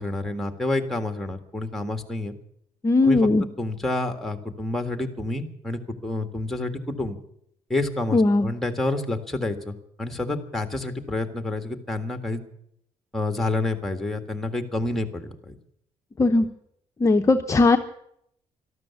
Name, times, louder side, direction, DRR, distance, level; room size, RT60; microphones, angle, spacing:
voice 1, 0.0-2.4 3.0-3.3 3.6-7.2 7.7-12.4 13.1-15.6, left 2 dB, ahead, 6 dB, 1.8 m, -28 dB
voice 2, 2.8-3.4 8.1-8.4 16.2-16.5 17.0-17.8, left 3 dB, 25° left, 5 dB, 0.7 m, -18 dB
13.0 x 12.5 x 8.3 m, 0.73 s
cardioid pair, 115°, 13 cm